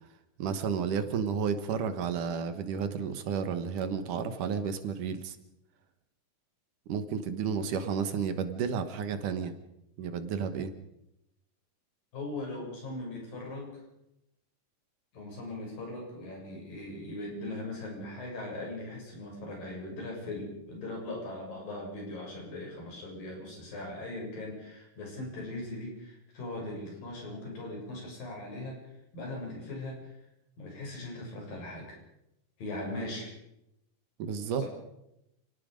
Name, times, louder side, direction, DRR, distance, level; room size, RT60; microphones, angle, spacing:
voice 1, 0.4-5.4 6.9-9.5 10.0-10.7 34.2-34.6, right 6 dB, 70° right, 10 dB, 2.8 m, -32 dB
voice 2, 12.1-13.8 15.1-28.8 29.1-30.2 30.6-32.0 32.6-33.3 34.6-34.7, left 2 dB, 80° left, -1 dB, 9.1 m, -39 dB
29.5 x 18.0 x 5.2 m, 0.84 s
omnidirectional pair, 4.0 m